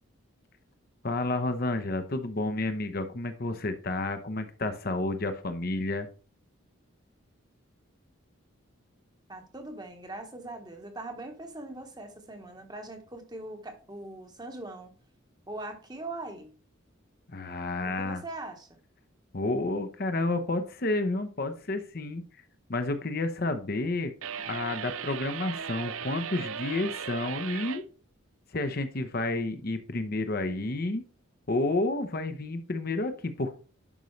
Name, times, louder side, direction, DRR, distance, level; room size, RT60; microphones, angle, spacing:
voice 1, 1.0-6.1 17.3-18.2 19.3-22.2 22.7-24.1 24.5-27.8 28.5-31.0 31.5-33.6, left 2 dB, 45° left, 0.8 m, -30 dB
voice 2, 9.3-14.9 15.5-16.5 18.0-18.8, right 2 dB, 20° right, 1.1 m, -41 dB
sound 1, 24.2-27.8, right 7 dB, 80° right, 0.5 m, -37 dB
11.0 x 5.3 x 3.2 m
head